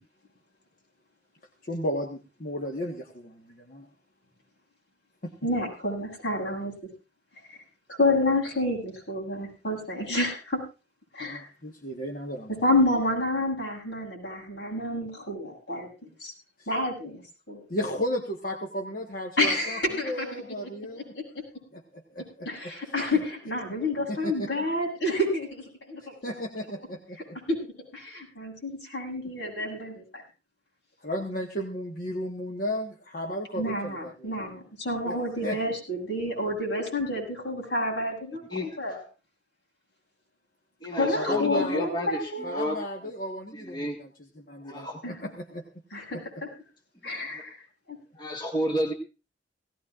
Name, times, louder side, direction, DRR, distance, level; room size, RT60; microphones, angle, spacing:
voice 1, 1.6-3.9 5.2-5.3 11.2-12.6 17.7-21.1 21.7-22.7 24.1-24.5 26.2-27.4 31.0-34.3 35.0-35.2 35.4-35.6 41.1-41.8 42.4-45.6 46.1-46.2, equal, 50° left, 1 dB, 1.4 m, -34 dB
voice 2, 5.4-6.7 7.9-10.6 11.1-11.5 12.6-15.9 16.2-16.3 16.7-17.2 17.5-17.6 19.4-20.4 20.9-21.4 22.4-26.1 27.5-27.6 27.9-30.2 33.6-38.4 38.8-39.0 40.9-42.8 45.0-45.2 45.9-46.2 47.0-47.6 47.9-48.0, left 1 dB, 85° left, -2 dB, 7.5 m, -29 dB
voice 3, 40.8-42.8 43.5-44.0 44.6-45.0 47.3-47.4 48.2-48.9, equal, 25° left, 0 dB, 1.6 m, -31 dB
18.0 x 17.0 x 2.5 m, 0.31 s
head